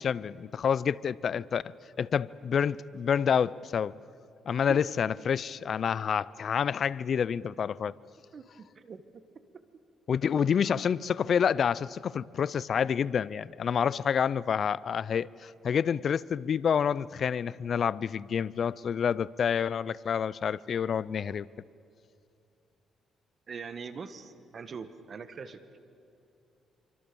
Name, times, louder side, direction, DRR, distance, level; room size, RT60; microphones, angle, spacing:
voice 1, 0.0-1.6 2.0-3.9 4.5-8.0 10.1-21.5, left 7 dB, 55° left, 0.5 m, -28 dB
voice 2, 8.7-9.2 23.5-25.6, right 5 dB, 45° right, 1.6 m, -42 dB
26.5 x 24.5 x 7.0 m
cardioid pair, 90°, 0 cm